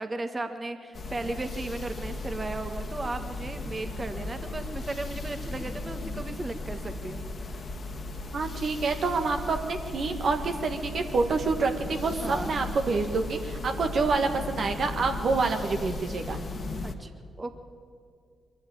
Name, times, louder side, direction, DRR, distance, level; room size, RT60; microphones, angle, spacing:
voice 1, 0.0-7.6 12.2-12.5 16.8-17.1 17.4-17.6, right 2 dB, 35° right, 7 dB, 1.6 m, -35 dB
sound 1, 0.9-16.9, left 2 dB, 50° left, 1.9 m, -36 dB
voice 2, 8.3-16.4, right 4 dB, 60° right, 4 dB, 1.7 m, -27 dB
23.0 x 13.5 x 8.8 m, 2.2 s
hypercardioid pair, 40°, 0 cm